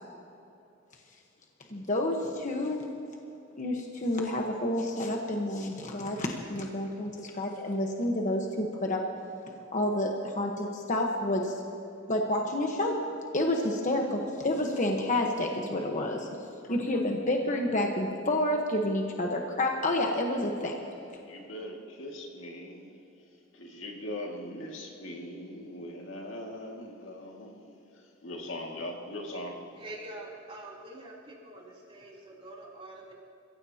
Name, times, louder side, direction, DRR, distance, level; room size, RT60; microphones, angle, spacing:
voice 1, 1.7-2.8 3.6-9.0 9.7-11.5 12.1-13.0 13.3-16.3 16.7-20.8, left 1 dB, 40° left, 1 dB, 1.3 m, -29 dB
voice 2, 21.2-23.0 23.5-29.6, left 1 dB, 70° left, 0 dB, 2.3 m, -40 dB
voice 3, 29.7-33.1, right 2 dB, 30° right, -5 dB, 3.5 m, -45 dB
29.0 x 16.0 x 2.9 m, 2.8 s
head